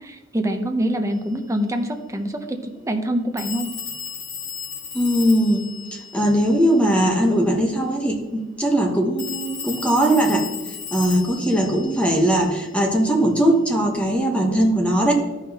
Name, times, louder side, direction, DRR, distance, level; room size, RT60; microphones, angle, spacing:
voice 1, 0.0-3.7, equal, 15° right, 4 dB, 0.7 m, -25 dB
Telephone, 1.1-1.2 3.4-7.1 9.2-12.9, left 7 dB, 85° left, 2.1 m, -35 dB
voice 2, 4.9-10.5 10.9-15.1, right 1 dB, 5° left, 1 dB, 1.1 m, -20 dB
13.5 x 5.7 x 2.9 m, 1.2 s
head